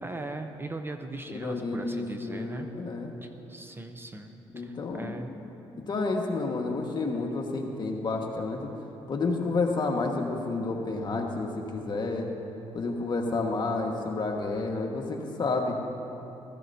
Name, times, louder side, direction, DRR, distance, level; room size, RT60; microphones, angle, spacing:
voice 1, 0.0-2.7 3.2-5.3, right 2 dB, 20° right, 6 dB, 0.7 m, -39 dB
voice 2, 1.3-3.1 4.5-5.2 5.8-8.7 9.1-12.3 12.7-15.8, left 3 dB, 45° left, 1 dB, 1.6 m, -30 dB
15.0 x 14.5 x 2.8 m, 2.9 s
cardioid pair, 75°, 11 cm